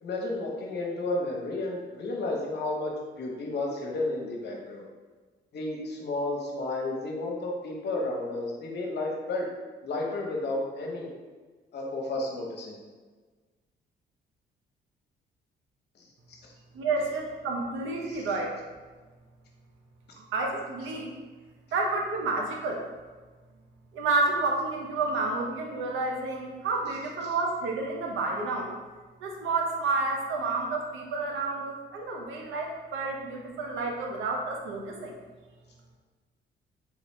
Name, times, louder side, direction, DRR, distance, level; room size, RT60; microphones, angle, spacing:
voice 1, 0.0-4.8 5.5-9.5 9.8-11.1 11.7-12.8 16.4-16.5 18.0-18.2 27.2-27.3, left 2 dB, 60° left, -1 dB, 0.9 m, -32 dB
voice 2, 16.7-18.5 20.3-21.1 21.7-22.8 23.9-28.7 29.2-35.1, right 3 dB, 80° right, 0 dB, 0.7 m, -30 dB
3.5 x 3.1 x 3.1 m, 1.4 s
cardioid pair, 90°, 20 cm